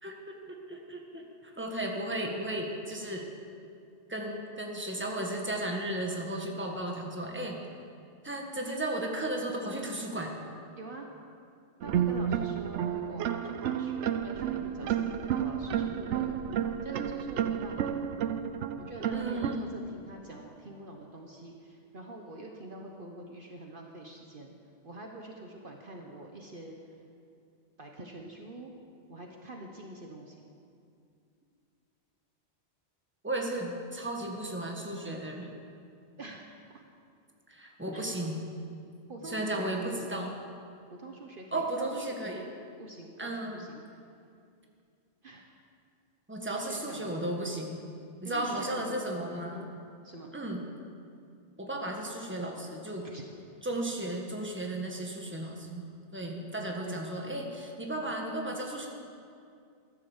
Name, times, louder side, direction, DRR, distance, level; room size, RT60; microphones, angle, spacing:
voice 1, 0.0-3.3 4.1-7.5 8.2-10.3 19.1-19.7 33.2-35.5 37.5-38.4 39.2-40.3 41.5-42.4 43.2-43.6 46.3-47.8 48.2-49.6 50.3-50.6 51.6-53.1 53.6-55.8 56.1-58.9, right 1 dB, 10° right, 0 dB, 1.6 m, -34 dB
voice 2, 10.8-11.1 11.8-18.0 18.8-24.5 24.8-26.9 27.8-28.7 29.1-30.4 36.2-36.5 37.9-38.1 39.1-40.0 41.0-42.2 42.8-43.8 45.2-45.5 46.6-47.2 48.2-49.0 49.4-49.7 50.0-50.3 53.0-53.2 56.3-57.0, right 2 dB, 50° right, 1 dB, 1.2 m, -45 dB
sound 1, 11.8-19.6, right 9 dB, 80° right, 1.0 m, -31 dB
14.0 x 11.0 x 7.3 m, 2.4 s
omnidirectional pair, 1.2 m